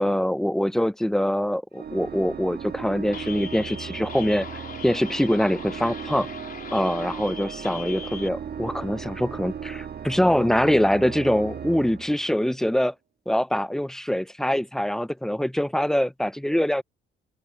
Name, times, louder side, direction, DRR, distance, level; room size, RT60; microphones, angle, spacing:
voice 1, 0.0-4.5 4.8-6.3 6.7-12.9 13.3-16.8, equal, ahead, 0.5 m, -24 dB
Organ, 1.7-12.7, right 8 dB, 55° right, 1.5 m, -37 dB
sound 1, 3.1-8.3, left 6 dB, 50° left, 4.3 m, -41 dB
open air
cardioid pair, 90°, 20 cm